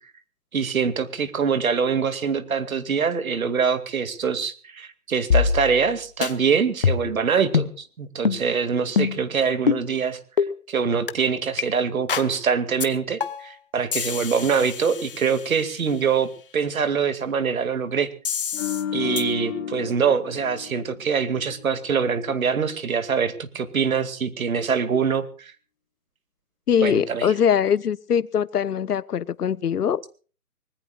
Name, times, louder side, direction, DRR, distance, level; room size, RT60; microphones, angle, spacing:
voice 1, 0.5-10.2 10.7-18.1 18.9-25.5 26.8-27.3, right 6 dB, 60° right, 2.3 m, -24 dB
sound 1, 5.3-5.9 6.2-6.3 6.8-7.2 7.5-7.7 8.3-8.4 9.0-9.3 9.7-9.8 10.4-10.5 11.1-11.2 11.6-11.7 12.1-12.3 12.8-12.9 13.2-13.5 13.9-15.8 18.3-18.8 19.2-19.3, left 6 dB, 35° left, 1.0 m, -24 dB
sound 2, 18.5-21.8 22.1-22.3, left 8 dB, 15° left, 1.9 m, -32 dB
voice 2, 26.7-30.2, left 8 dB, 70° left, 0.9 m, -22 dB
24.5 x 20.0 x 2.4 m
hypercardioid pair, 165°, 47 cm